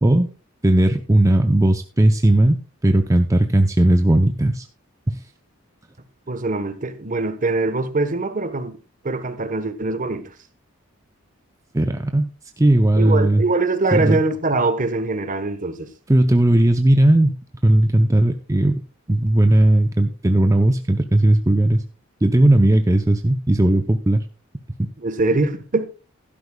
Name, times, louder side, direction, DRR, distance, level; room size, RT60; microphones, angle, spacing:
voice 1, 0.6-4.6 5.1-5.2 11.7-12.3 12.6-13.4 13.9-14.2 16.1-17.4 17.6-18.8 19.1-21.8 22.2-24.2 24.8-24.9, right 1 dB, 15° right, 0.6 m, -17 dB
voice 2, 6.3-8.8 9.0-10.3 12.9-15.9 25.0-25.9, right 3 dB, 40° right, 1.1 m, -23 dB
15.5 x 12.0 x 2.3 m
head